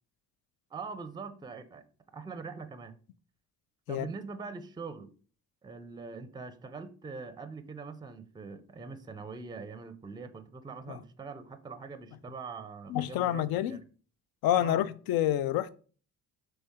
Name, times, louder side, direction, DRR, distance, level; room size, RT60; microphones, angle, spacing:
voice 1, 0.7-1.8 2.1-2.9 3.9-5.1 5.6-13.9 14.6-14.9, right 4 dB, 10° right, 0.4 m, -43 dB
voice 2, 12.9-13.8 14.4-15.8, left 12 dB, 70° left, 0.5 m, -28 dB
4.2 x 3.3 x 3.6 m
cardioid pair, 85°, 37 cm